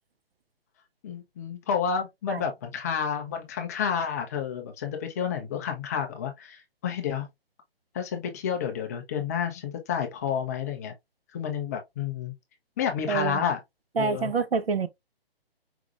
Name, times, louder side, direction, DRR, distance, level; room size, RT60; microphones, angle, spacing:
voice 1, 1.0-7.3 7.9-10.9 11.3-12.3 12.8-13.6 14.0-14.3, left 7 dB, 15° left, 0.5 m, -30 dB
voice 2, 13.1-13.4 14.0-14.9, right 5 dB, 75° right, 0.9 m, -27 dB
4.8 x 3.6 x 2.4 m
hypercardioid pair, 145°, 31 cm